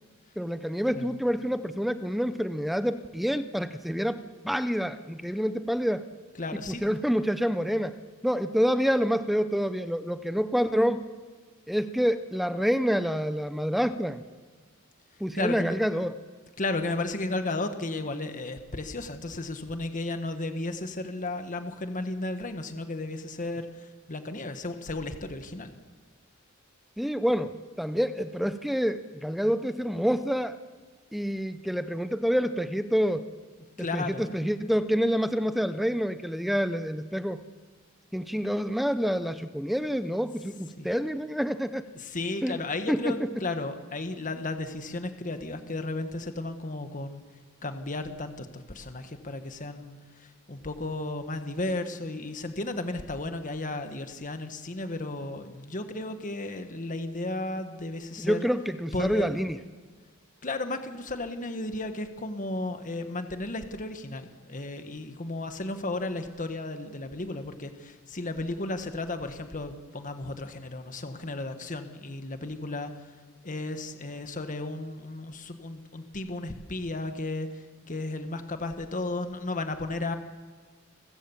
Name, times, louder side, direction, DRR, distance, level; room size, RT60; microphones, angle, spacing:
voice 1, 0.4-6.1 6.5-8.0 8.2-11.0 11.7-14.2 15.2-16.1 27.0-30.6 31.1-33.3 33.9-37.4 38.1-41.8 42.4-42.6 42.9-43.3 58.2-59.6, equal, ahead, 11 dB, 0.6 m, -27 dB
voice 2, 6.4-6.8 15.3-15.8 16.6-25.7 33.8-34.4 40.8-40.9 41.9-58.5 58.9-59.3 60.4-73.0 73.4-80.2, left 2 dB, 40° left, 8 dB, 1.5 m, -34 dB
29.5 x 15.5 x 7.2 m, 1.4 s
head